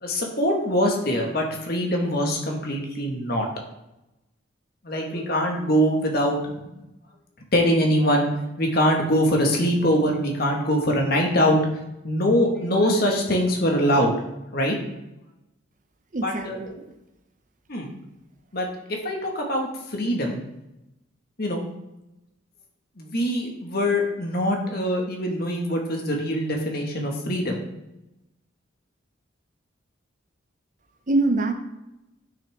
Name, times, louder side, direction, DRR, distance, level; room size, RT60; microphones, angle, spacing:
voice 1, 0.0-3.5 4.8-6.6 7.5-8.3 8.6-11.6 12.0-14.1 14.5-14.8 16.2-16.6 17.7-17.9 18.5-20.4 21.4-21.6 23.0-27.6, equal, 50° left, 1 dB, 1.7 m, -23 dB
voice 2, 16.1-16.7 31.1-31.5, right 2 dB, 40° right, 7 dB, 0.7 m, -23 dB
9.5 x 6.3 x 3.6 m, 0.91 s
head